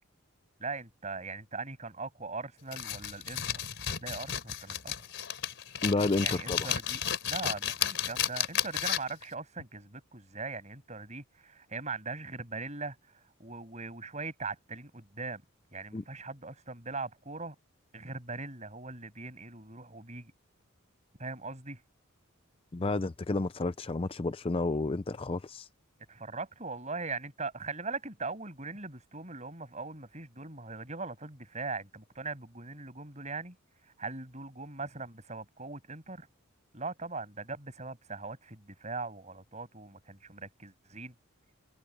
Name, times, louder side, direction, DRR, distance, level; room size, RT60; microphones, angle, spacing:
voice 1, 0.6-4.9 6.2-13.0 13.4-15.4 15.7-17.6 17.9-20.3 21.2-21.8 26.1-33.6 33.8-36.3 36.7-41.1, right 3 dB, 35° right, 7.7 m, -40 dB
sound 1, 2.7-9.2, left 9 dB, 55° left, 4.8 m, -33 dB
voice 2, 5.8-6.6 15.9-16.0 22.7-25.7, left 2 dB, 25° left, 0.5 m, -30 dB
head